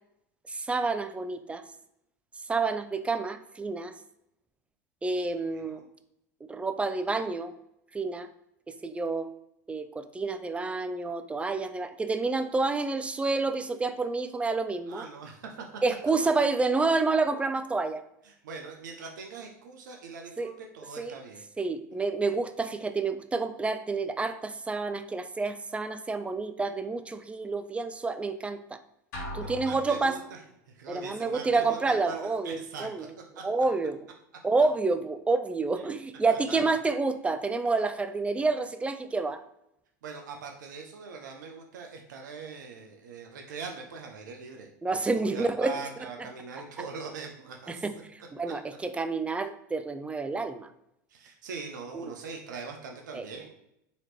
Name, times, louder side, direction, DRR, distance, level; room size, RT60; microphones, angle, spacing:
voice 1, 0.5-1.6 2.5-3.9 5.0-5.8 6.5-7.5 7.9-8.3 8.7-9.3 9.7-15.0 15.8-18.0 20.4-20.5 21.0-21.2 21.6-28.8 29.3-30.2 30.9-33.1 33.4-34.0 34.4-39.4 44.8-45.8 47.7-47.9 48.3-50.7 51.9-52.1 53.1-53.3, right 3 dB, 10° right, 10 dB, 0.3 m, -29 dB
voice 2, 5.2-5.9 14.9-15.7 18.2-21.4 29.4-30.4 30.7-33.4 36.3-36.8 40.0-47.9 48.2-48.3 51.1-53.5, right 4 dB, 85° right, 3 dB, 0.6 m, -42 dB
sound 1, 29.1-30.6, equal, 75° left, 1.5 m, -40 dB
4.0 x 2.9 x 3.2 m, 0.80 s
hypercardioid pair, 95°, 10 cm